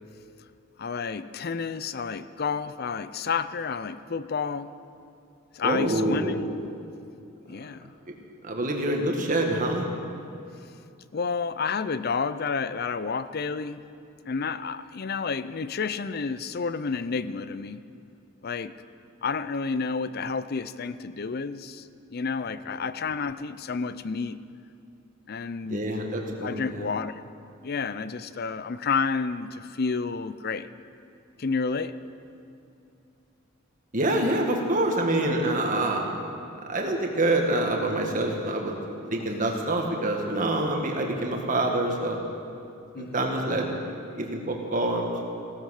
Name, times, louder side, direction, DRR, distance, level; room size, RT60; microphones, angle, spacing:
voice 1, 0.8-4.7 5.5-6.5 7.5-7.9 11.1-13.8 14.2-17.8 18.4-18.7 19.2-24.4 25.3-25.9 26.4-27.2 27.6-30.7 31.4-32.0 42.9-43.2, left 5 dB, 45° left, 14 dB, 0.5 m, -30 dB
voice 2, 5.6-6.4 8.4-9.8 25.7-26.8 33.9-36.0 36.7-38.8 39.1-42.2 43.0-43.7 44.2-45.3, right 1 dB, 40° right, 1 dB, 1.8 m, -26 dB
17.0 x 13.0 x 6.5 m, 2.6 s
head